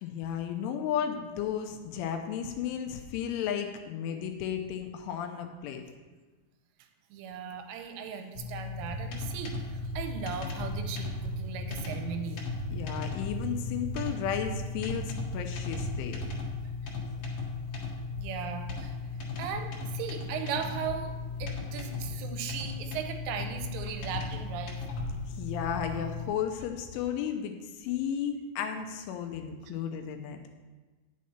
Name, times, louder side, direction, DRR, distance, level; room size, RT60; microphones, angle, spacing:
voice 1, 0.0-5.8 12.7-16.2 25.3-30.4, left 8 dB, 80° left, 5 dB, 2.9 m, -34 dB
voice 2, 7.1-12.4 18.2-18.9 19.4-21.1 21.4-24.8, right 7 dB, 80° right, 6 dB, 3.2 m, -37 dB
sound 1, 8.3-26.3, left 4 dB, 65° left, 2.2 m, -37 dB
sound 2, 8.8-10.1 10.6-12.0 12.5-12.9 13.3-15.5 15.7-16.4, right 7 dB, 60° right, 2.5 m, -39 dB
10.0 x 7.4 x 4.2 m, 1.3 s
omnidirectional pair, 5.9 m